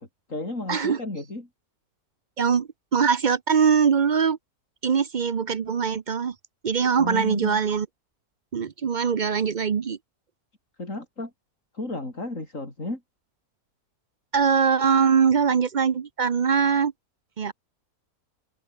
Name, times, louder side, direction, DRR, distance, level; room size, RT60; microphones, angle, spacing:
voice 1, 0.0-1.5 7.0-7.7 10.8-11.3 11.7-13.0, left 2 dB, 55° left, 6.2 m, -33 dB
voice 2, 0.7-1.0 2.4-4.4 4.8-6.3 6.6-7.9 8.5-10.0 14.3-16.9 17.4-17.5, right 6 dB, 45° right, 0.6 m, -22 dB
omnidirectional pair, 1.6 m